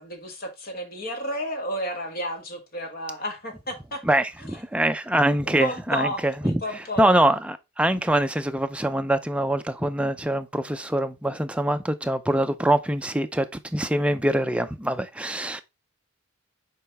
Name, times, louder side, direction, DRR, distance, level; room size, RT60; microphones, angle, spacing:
voice 1, 0.0-4.0 5.5-7.1, equal, 40° left, 1.5 m, -32 dB
voice 2, 4.0-6.6 7.0-15.6, right 1 dB, 5° right, 0.4 m, -24 dB
7.1 x 4.8 x 3.4 m
head